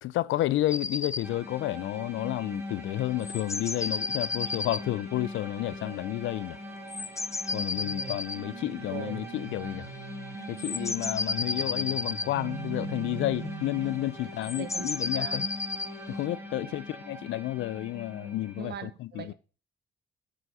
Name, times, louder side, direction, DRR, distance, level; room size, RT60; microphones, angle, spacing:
voice 1, 0.0-6.6 7.5-9.9 10.5-15.4 16.1-19.3, left 15 dB, 75° left, 0.5 m, -31 dB
sound 1, 0.7-1.3 3.2-4.8 6.9-8.4 10.4-12.3 14.4-15.9, left 3 dB, 15° left, 0.4 m, -32 dB
sound 2, 1.2-18.7, left 1 dB, 10° right, 2.0 m, -42 dB
voice 2, 7.7-8.2 8.6-9.3 14.4-15.5 16.5-16.7 18.6-19.3, right 8 dB, 55° right, 1.0 m, -42 dB
sound 3, 8.4-14.3, right 12 dB, 75° right, 0.7 m, -43 dB
7.7 x 6.3 x 5.5 m
cardioid pair, 90°, 20 cm